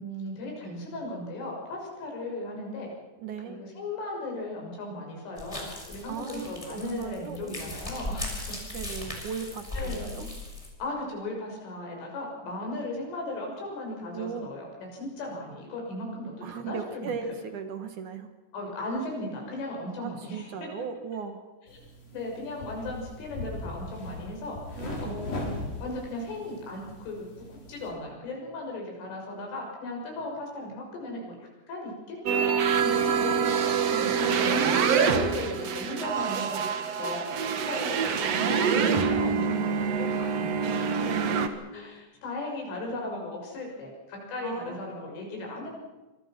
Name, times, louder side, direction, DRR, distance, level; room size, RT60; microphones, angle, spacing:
voice 1, 0.0-2.9 3.5-8.3 9.0-9.2 9.7-10.3 10.8-17.1 18.5-20.7 21.7-21.8 22.1-25.6 25.8-31.4 31.7-32.4 32.8-34.6 35.1-36.7 37.0-37.3 37.5-40.9 41.7-45.7, left 2 dB, 85° left, 0 dB, 9.0 m, -37 dB
voice 2, 3.2-3.6 6.1-7.7 8.7-10.3 14.1-14.5 16.4-18.3 20.0-21.5 24.8-25.2 41.0-41.6 44.4-44.9, right 6 dB, 65° right, 8 dB, 2.0 m, -37 dB
sound 1, 5.4-10.7, left 2 dB, 5° left, 5.2 m, -38 dB
sound 2, 21.7-27.9, left 2 dB, 45° left, 6.7 m, -39 dB
sound 3, 32.2-41.5, right 6 dB, 85° right, 1.4 m, -26 dB
25.5 x 24.5 x 6.0 m, 1.1 s
omnidirectional pair, 5.6 m